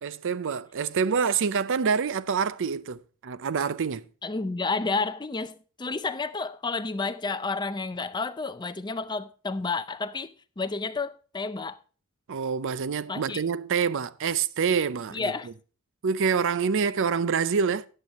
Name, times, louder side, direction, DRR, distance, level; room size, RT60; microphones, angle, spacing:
voice 1, 0.0-4.1 12.3-15.3 16.0-17.9, right 6 dB, 60° right, 0.5 m, -26 dB
voice 2, 4.2-11.8 13.1-13.4 15.1-15.5, left 3 dB, 20° left, 0.6 m, -31 dB
13.5 x 8.9 x 3.0 m
head